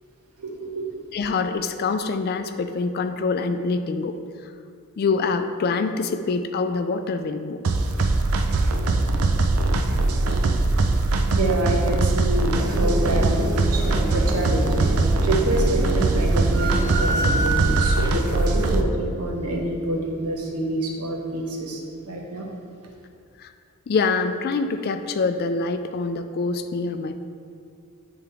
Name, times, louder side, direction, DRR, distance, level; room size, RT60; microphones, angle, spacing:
voice 1, 0.4-0.8 11.3-14.9 15.2-22.5, right 1 dB, 90° right, -1 dB, 1.0 m, -27 dB
voice 2, 1.1-4.5 5.0-7.6 23.4-23.5 23.9-27.2, left 4 dB, 45° left, 9 dB, 0.3 m, -25 dB
sound 1, 7.6-18.8, right 2 dB, 70° right, 0.5 m, -21 dB
sound 2, 12.6-18.1, equal, 20° right, 0.5 m, -31 dB
sound 3, 16.5-18.4, right 3 dB, 55° right, 1.0 m, -27 dB
9.2 x 3.5 x 3.3 m, 2.3 s
head